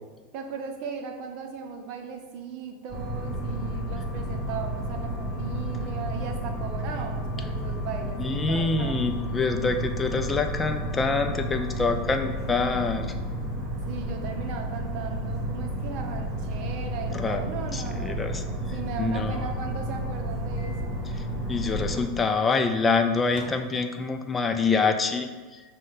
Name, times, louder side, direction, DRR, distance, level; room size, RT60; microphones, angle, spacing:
voice 1, 0.3-9.0 13.9-20.9, right 6 dB, 55° right, 4 dB, 0.6 m, -37 dB
sound 1, 2.9-22.0, equal, 30° right, 1.1 m, -31 dB
voice 2, 8.2-13.1 17.1-18.4 19.0-19.4 21.5-25.6, left 4 dB, 20° left, 6 dB, 0.3 m, -26 dB
Microwave oven, 20.6-20.9 21.2-21.3 23.3-24.3, left 2 dB, 65° left, 0.7 m, -45 dB
6.2 x 2.2 x 3.8 m, 1.3 s
hypercardioid pair, 105°, 0 cm